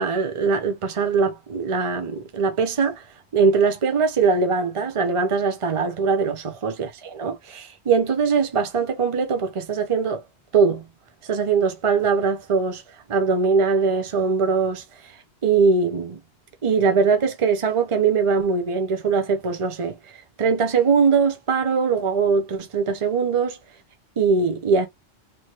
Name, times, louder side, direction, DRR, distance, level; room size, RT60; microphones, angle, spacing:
voice 1, 0.0-3.0 3.3-10.2 10.5-10.8 11.3-12.8 13.1-14.8 15.4-16.2 16.6-20.0 20.4-23.6 24.2-24.9, right 5 dB, 35° right, 0.7 m, -21 dB
3.0 x 2.2 x 3.1 m
omnidirectional pair, 1.1 m